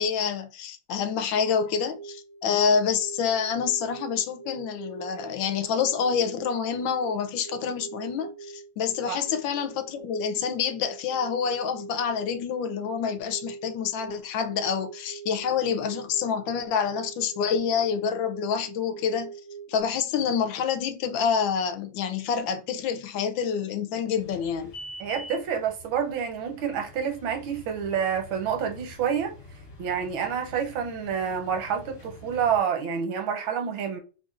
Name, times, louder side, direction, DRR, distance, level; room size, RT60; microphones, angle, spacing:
voice 1, 0.0-19.3 19.7-24.7, left 7 dB, 80° left, 1.3 m, -27 dB
sound 1, 1.8-19.8, right 6 dB, 65° right, 0.8 m, -43 dB
sound 2, 24.1-32.6, left 1 dB, 60° left, 2.2 m, -46 dB
voice 2, 25.0-29.3 29.8-34.0, right 7 dB, 85° right, 1.6 m, -28 dB
5.2 x 2.5 x 2.5 m
omnidirectional pair, 2.1 m